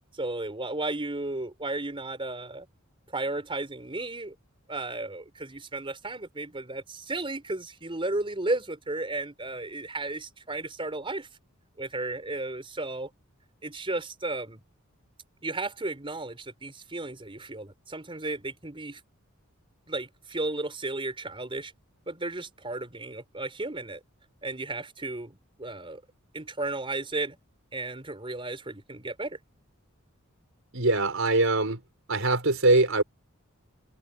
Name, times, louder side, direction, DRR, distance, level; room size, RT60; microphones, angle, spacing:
voice 1, 0.1-2.7 3.1-4.3 4.7-11.3 11.8-13.1 13.6-14.6 15.4-19.0 19.9-21.7 22.1-24.0 24.4-26.0 26.3-27.4 27.7-29.4, right 2 dB, 25° right, 4.6 m, -34 dB
voice 2, 30.7-31.8 32.1-33.0, right 2 dB, 70° right, 5.3 m, -22 dB
head